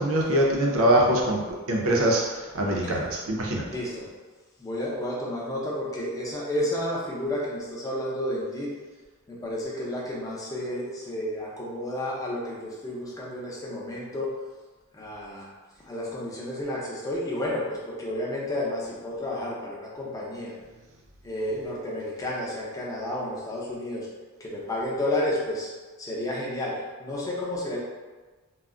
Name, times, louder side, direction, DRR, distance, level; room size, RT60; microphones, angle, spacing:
voice 1, 0.0-1.4 1.7-3.7, right 1 dB, 65° right, -1 dB, 0.6 m, -23 dB
voice 2, 2.6-3.1 3.6-4.1 4.6-8.7 9.3-14.3 14.9-15.5 15.9-20.6 21.2-24.1 24.4-25.7 26.0-27.8, left 1 dB, 15° left, -5 dB, 0.6 m, -31 dB
2.3 x 2.0 x 3.6 m, 1.3 s
head